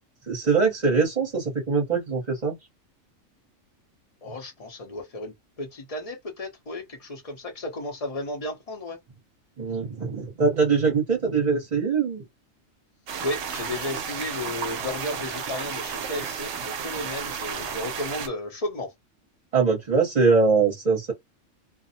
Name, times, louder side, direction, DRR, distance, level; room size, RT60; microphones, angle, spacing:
voice 1, 0.2-2.5 9.6-12.3 19.5-21.1, right 4 dB, 35° right, 0.9 m, -22 dB
voice 2, 4.2-9.0 13.2-18.9, left 2 dB, 35° left, 0.6 m, -34 dB
sound 1, 13.1-18.3, right 6 dB, 65° right, 0.8 m, -33 dB
2.5 x 2.0 x 2.7 m
omnidirectional pair, 1.4 m